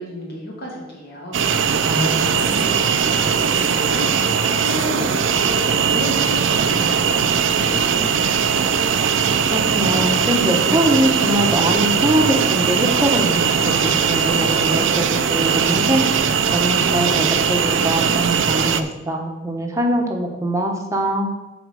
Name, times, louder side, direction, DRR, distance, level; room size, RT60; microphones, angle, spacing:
voice 1, 0.0-8.4, equal, 55° left, -3 dB, 2.7 m, -32 dB
sound 1, 1.3-18.8, right 6 dB, 70° right, 0.5 m, -19 dB
voice 2, 1.8-2.5 9.5-21.3, right 1 dB, 15° right, 1 dB, 1.0 m, -23 dB
7.8 x 4.3 x 6.3 m, 1.0 s
head